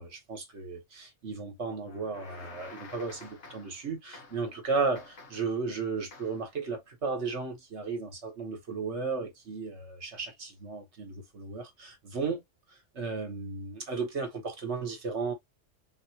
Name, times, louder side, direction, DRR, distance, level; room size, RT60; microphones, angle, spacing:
voice 1, 0.0-12.4 12.9-15.3, right 4 dB, 65° right, 1.4 m, -34 dB
sound 1, 1.8-3.8 4.1-4.5 4.9-5.6 6.1-6.5, left 3 dB, 70° left, 1.4 m, -49 dB
3.8 x 2.7 x 2.8 m
omnidirectional pair, 1.3 m